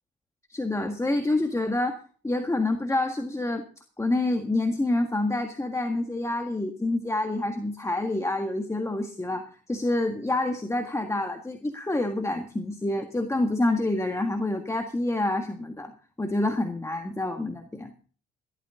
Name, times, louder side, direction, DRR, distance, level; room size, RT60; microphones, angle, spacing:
voice 1, 0.5-2.0 2.2-3.6 4.0-15.9 16.2-17.9, left 2 dB, 15° left, 4 dB, 1.7 m, -27 dB
16.0 x 12.0 x 3.8 m, 0.40 s
cardioid pair, 90°, 20 cm